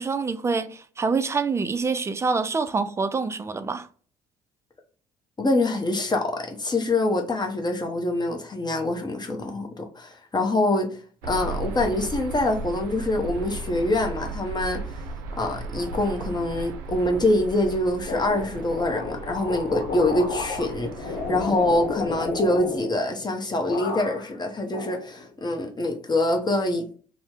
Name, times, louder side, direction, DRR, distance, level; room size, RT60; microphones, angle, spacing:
voice 1, 0.0-3.9, right 4 dB, 15° right, 0.3 m, -26 dB
voice 2, 5.4-10.9 11.3-14.8 15.4-26.9, left 2 dB, 25° left, 0.7 m, -25 dB
sound 1, 11.2-22.8, right 3 dB, 80° right, 0.4 m, -36 dB
sound 2, 18.0-23.3 23.6-24.4 24.7-25.6, left 4 dB, 60° left, 0.9 m, -32 dB
2.7 x 2.0 x 3.4 m
hypercardioid pair, 60°, 16 cm